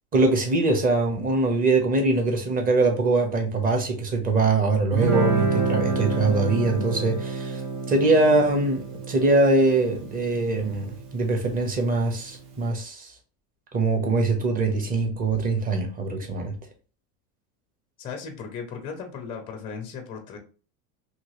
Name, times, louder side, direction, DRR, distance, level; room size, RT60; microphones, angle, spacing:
voice 1, 0.1-7.6 7.9-13.1 13.7-16.5, right 2 dB, 20° right, 0.7 m, -23 dB
Guitar, 4.9-12.1, right 4 dB, 65° right, 1.1 m, -29 dB
voice 2, 18.0-20.4, left 6 dB, 15° left, 0.4 m, -36 dB
2.9 x 2.8 x 2.9 m
supercardioid pair, 135°, 46 cm